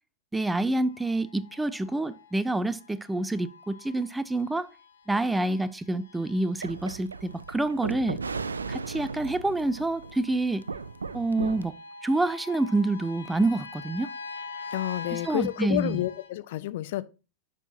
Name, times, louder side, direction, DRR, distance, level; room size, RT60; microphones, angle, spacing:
voice 1, 0.3-4.7 5.1-8.2 8.7-10.7 11.1-11.8 12.0-14.1 15.1-16.0, right 2 dB, 5° right, 0.5 m, -27 dB
sound 1, 0.9-16.3, left 4 dB, 70° left, 1.0 m, -45 dB
sound 2, 6.6-11.7, right 4 dB, 75° right, 0.4 m, -36 dB
voice 2, 14.7-17.0, left 15 dB, 55° left, 0.5 m, -30 dB
10.5 x 4.6 x 2.7 m
figure-of-eight pair, 90°, 0 cm